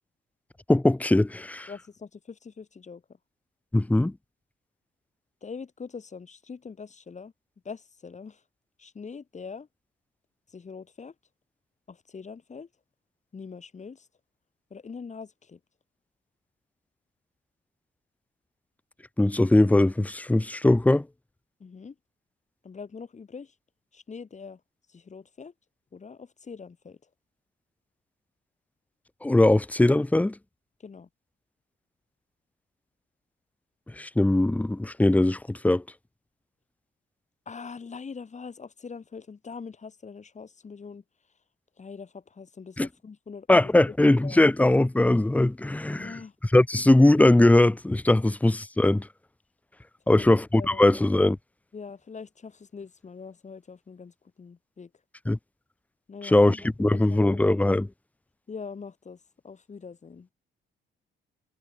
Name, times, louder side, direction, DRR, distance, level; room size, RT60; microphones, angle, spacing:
voice 1, 0.7-1.7 3.7-4.1 19.2-21.1 29.2-30.4 34.0-35.8 42.8-42.9 43.5-46.2 46.5-49.1 50.1-51.4 55.3-55.4 56.2-57.9, left 1 dB, 5° left, 0.9 m, -20 dB
voice 2, 1.7-3.0 5.4-7.3 7.6-8.4 8.8-9.7 10.5-11.1 11.9-12.7 13.3-14.1 14.7-15.6 21.6-21.9 22.6-23.5 23.9-24.6 24.9-25.5 25.9-27.0 30.8-31.1 37.5-41.0 41.8-43.9 44.2-44.5 45.9-46.3 48.2-48.3 50.1-50.9 51.7-54.9 56.1-57.5 58.5-60.3, left 5 dB, 35° left, 6.3 m, -43 dB
cardioid pair, 90°, 20 cm